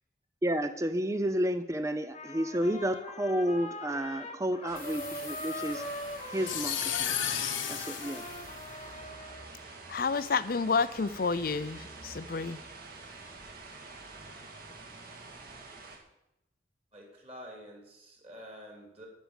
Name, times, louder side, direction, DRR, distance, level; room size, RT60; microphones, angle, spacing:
voice 1, 0.4-5.8 6.3-7.2 7.7-8.2, equal, 15° right, 11 dB, 0.4 m, -31 dB
Trumpet, 2.1-9.5, left 1 dB, 30° left, 0.9 m, -42 dB
sound 1, 4.7-16.0, right 3 dB, 50° right, 2.0 m, -47 dB
sound 2, 4.8-9.1, left 10 dB, 80° left, 1.2 m, -35 dB
voice 2, 9.9-12.6, left 4 dB, 45° left, 15 dB, 0.5 m, -30 dB
voice 3, 16.9-19.1, equal, 30° right, 0 dB, 3.1 m, -48 dB
10.0 x 6.3 x 8.9 m, 0.90 s
head